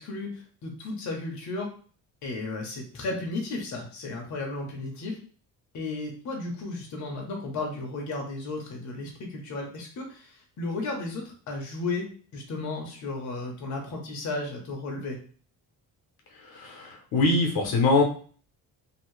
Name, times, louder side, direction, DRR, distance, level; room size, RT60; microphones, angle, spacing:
voice 1, 0.0-1.7 2.2-5.2 5.7-12.1 12.3-15.2, left 2 dB, 50° left, 0 dB, 0.8 m, -34 dB
voice 2, 16.3-18.0, left 3 dB, 75° left, 1 dB, 0.9 m, -23 dB
2.7 x 2.7 x 3.1 m, 0.43 s
cardioid pair, 155°, 37 cm